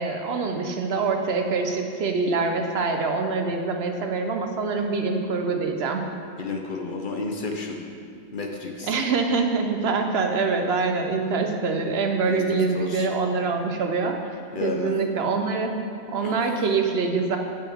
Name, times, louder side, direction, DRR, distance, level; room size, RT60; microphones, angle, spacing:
voice 1, 0.0-6.0 8.9-14.2 14.6-15.7 16.1-17.4, right 4 dB, 70° right, 4 dB, 1.0 m, -25 dB
voice 2, 6.4-7.8 8.3-8.9 12.2-12.4 12.7-13.1 14.5-14.9 16.2-16.3, left 3 dB, 50° left, 2 dB, 0.9 m, -31 dB
8.9 x 8.3 x 3.6 m, 2.3 s
omnidirectional pair, 1.1 m